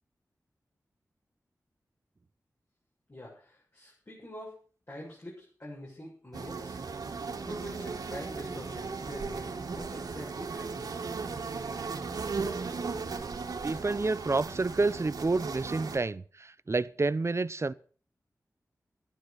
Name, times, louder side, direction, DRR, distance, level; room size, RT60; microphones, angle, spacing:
voice 1, 3.1-4.6 4.9-6.8 7.4-9.5 9.7-11.1, left 1 dB, 40° left, 7.5 m, -45 dB
sound 1, 6.3-16.0, right 4 dB, 85° right, 2.2 m, -36 dB
voice 2, 13.6-17.7, right 3 dB, 45° right, 0.8 m, -29 dB
12.5 x 11.5 x 6.7 m
cardioid pair, 40°, 6 cm